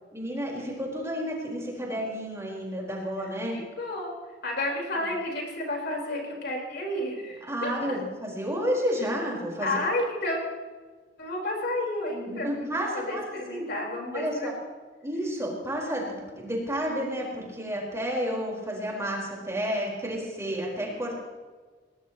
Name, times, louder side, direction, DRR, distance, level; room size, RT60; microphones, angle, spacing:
voice 1, 0.1-3.6 7.5-9.8 12.1-13.2 13.5-13.7 14.1-14.5 15.0-21.2, equal, 15° right, -3 dB, 4.7 m, -31 dB
voice 2, 3.5-4.1 4.4-8.0 9.6-10.4 11.2-14.5, left 1 dB, 60° left, -1 dB, 4.6 m, -31 dB
21.5 x 20.0 x 3.1 m, 1.4 s
head